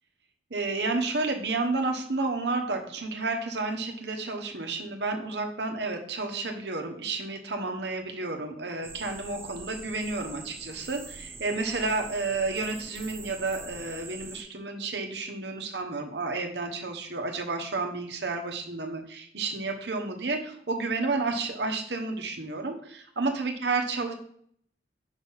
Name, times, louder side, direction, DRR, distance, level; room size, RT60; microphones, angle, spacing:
voice 1, 0.5-24.1, right 3 dB, 65° right, 4 dB, 1.1 m, -31 dB
sound 1, 8.8-14.4, right 4 dB, 15° right, 0.3 m, -44 dB
5.4 x 4.1 x 5.6 m, 0.63 s
head